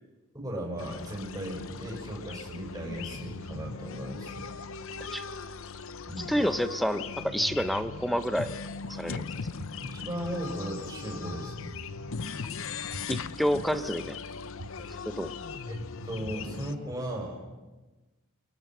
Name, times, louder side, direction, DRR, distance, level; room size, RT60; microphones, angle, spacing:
voice 1, 0.3-4.5 6.1-6.4 9.8-11.7 15.7-17.4, equal, 15° right, -2 dB, 6.4 m, -36 dB
sound 1, 0.8-16.7, left 5 dB, 65° left, 0.8 m, -39 dB
voice 2, 6.3-8.5 8.9-9.2 13.1-14.2 15.1-15.3, equal, ahead, 11 dB, 0.8 m, -29 dB
sound 2, 9.6-9.7 10.2-10.3 11.3-11.4 11.9-12.0 12.9-13.0 13.6-13.7 14.6-14.7 15.2-15.3 16.2-16.3 16.9-17.0, equal, 65° right, 1.8 m, -41 dB
29.5 x 23.5 x 6.2 m, 1.2 s
head